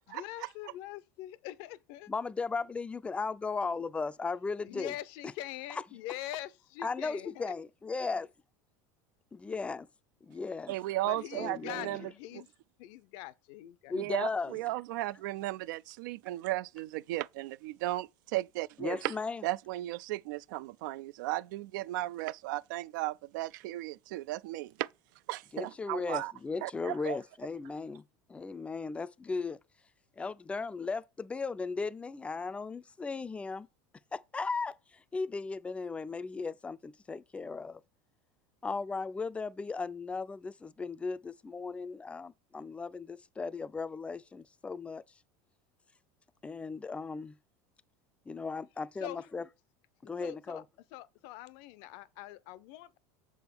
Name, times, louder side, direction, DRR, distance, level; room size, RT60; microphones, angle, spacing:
voice 1, 0.1-2.1 4.6-7.5 11.0-12.5 12.8-13.9 49.0-49.3 50.0-50.6 50.9-53.0, left 14 dB, 60° left, 0.6 m, -43 dB
voice 2, 2.1-4.9 6.8-8.3 9.3-9.9 10.2-10.8 11.3-12.0 13.9-14.6 18.8-19.4 25.5-29.6 30.2-33.7 34.1-37.8 38.6-45.0 46.4-47.4 48.3-49.4 50.0-50.6, left 4 dB, 10° left, 0.4 m, -36 dB
voice 3, 10.7-12.0 13.9-19.1 19.4-24.9 25.3-26.3 26.6-27.2, right 17 dB, 75° right, 0.4 m, -35 dB
6.7 x 3.6 x 6.0 m
supercardioid pair, 130°, 10 cm